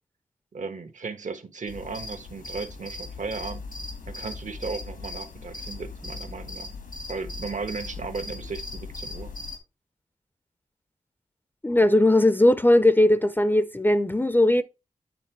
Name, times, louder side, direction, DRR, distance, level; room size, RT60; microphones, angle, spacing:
voice 1, 0.5-3.7 4.1-6.7 7.1-9.3, right 4 dB, 60° right, 1.2 m, -35 dB
sound 1, 1.7-9.6, left 3 dB, 80° left, 1.7 m, -38 dB
voice 2, 11.6-14.6, left 1 dB, 15° left, 0.6 m, -19 dB
8.7 x 3.5 x 4.5 m
cardioid pair, 50°, 14 cm